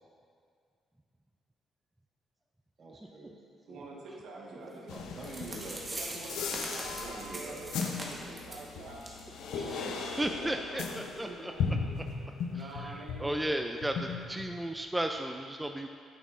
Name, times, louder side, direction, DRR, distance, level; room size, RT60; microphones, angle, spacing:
voice 1, 2.8-3.8 4.4-5.8 7.0-7.6, right 3 dB, 45° right, -2 dB, 1.3 m, -46 dB
voice 2, 3.7-4.9 5.6-9.0 9.5-11.9 12.5-13.8, right 2 dB, 75° right, -2 dB, 1.1 m, -46 dB
sound 1, 4.9-13.5 13.8-14.9, left 5 dB, 80° left, 0.5 m, -37 dB
sound 2, 4.9-5.0 5.2-8.7 9.0-9.2 9.5-9.6 10.1-10.2, right 1 dB, 25° right, 1.3 m, -41 dB
voice 3, 9.5-11.5 12.5-15.9, right 1 dB, 10° right, 4 dB, 0.3 m, -35 dB
9.2 x 6.2 x 2.5 m, 2.3 s
cardioid pair, 90°, 0 cm